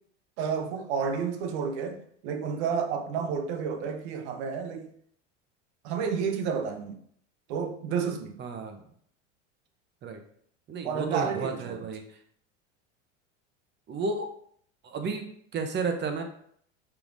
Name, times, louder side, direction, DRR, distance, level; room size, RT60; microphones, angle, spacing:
voice 1, 0.4-4.9 5.8-7.0 7.5-8.4 10.8-11.8, right 6 dB, 60° right, 0.9 m, -31 dB
voice 2, 8.4-8.8 10.0-10.2 10.7-12.0 13.9-14.3 14.8-16.2, right 4 dB, 30° right, 0.9 m, -32 dB
5.6 x 3.6 x 2.6 m
hypercardioid pair, 90°, 38 cm